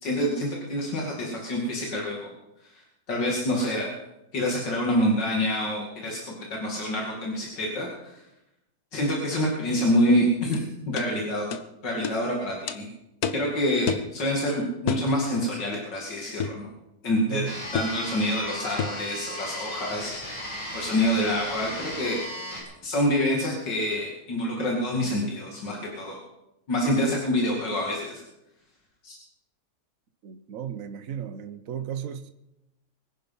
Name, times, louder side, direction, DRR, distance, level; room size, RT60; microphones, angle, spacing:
voice 1, 0.0-2.3 2.6-3.9 4.3-8.2 8.9-11.5 11.8-12.9 13.3-16.6 17.0-17.4 17.7-22.2 22.8-26.2 26.7-28.2 29.0-29.1, equal, 85° left, -1 dB, 3.1 m, -27 dB
sound 1, 10.5-10.6 11.0-11.1 11.5-11.6 12.0-12.2 12.7-12.8 13.2-13.5 13.9-14.1 14.9-15.1 16.4-16.6 17.7-18.0 18.8-19.0, left 7 dB, 60° left, 1.4 m, -29 dB
voice 2, 17.3-17.6 30.2-32.3, right 9 dB, 55° right, 9 dB, 1.4 m, -34 dB
sound 2, 17.4-22.6, equal, 45° left, 6.4 m, -36 dB
23.5 x 10.0 x 5.6 m, 0.91 s
omnidirectional pair, 1.9 m